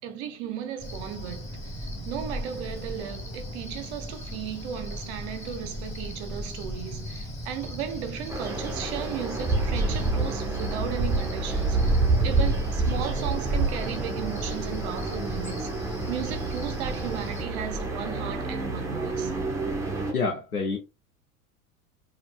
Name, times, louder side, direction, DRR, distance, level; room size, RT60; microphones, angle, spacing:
voice 1, 0.0-12.0 12.2-15.7 16.1-19.3, right 9 dB, 50° right, 0.8 m, -35 dB
Cricket, 0.8-17.4, equal, 15° left, 1.2 m, -37 dB
sound 1, 8.3-20.1, right 3 dB, 5° right, 0.8 m, -28 dB
voice 2, 20.1-20.8, left 4 dB, 85° left, 0.7 m, -27 dB
4.5 x 2.3 x 2.3 m
figure-of-eight pair, 80°, 43 cm